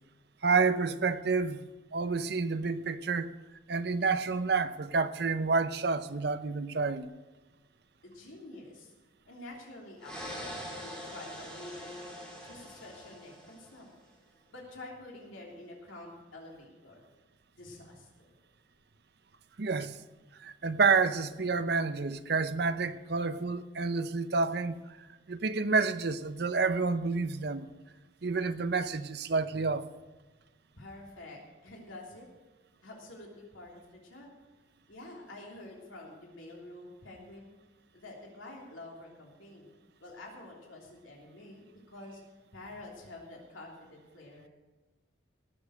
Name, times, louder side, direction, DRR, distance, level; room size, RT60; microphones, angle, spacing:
voice 1, 0.4-1.6 1.9-3.3 3.7-7.1 19.6-20.0 20.4-27.7 28.2-29.9, right 4 dB, 55° right, 0.6 m, -29 dB
voice 2, 8.0-8.9 9.3-12.1 12.4-13.9 14.5-17.0 17.6-18.3 30.8-32.3 32.8-34.3 34.9-37.5 37.9-39.7 40.0-42.2 42.5-44.5, left 2 dB, 85° left, 3.1 m, -48 dB
sound 1, 10.0-13.9, equal, 5° left, 3.1 m, -43 dB
18.0 x 7.2 x 6.5 m
head